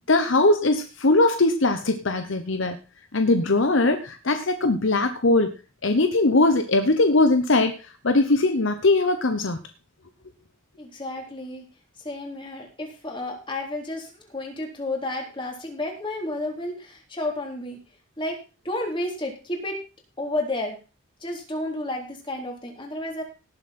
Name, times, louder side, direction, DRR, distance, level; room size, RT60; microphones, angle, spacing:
voice 1, 0.1-2.8 3.1-5.5 5.8-7.8 8.0-9.6, left 2 dB, 65° left, 8 dB, 1.0 m, -20 dB
voice 2, 10.8-11.6 12.0-17.8 18.2-18.4 18.6-19.8 20.2-20.8 21.2-23.2, left 1 dB, 25° left, 1 dB, 3.6 m, -31 dB
18.0 x 7.5 x 4.3 m, 0.33 s
head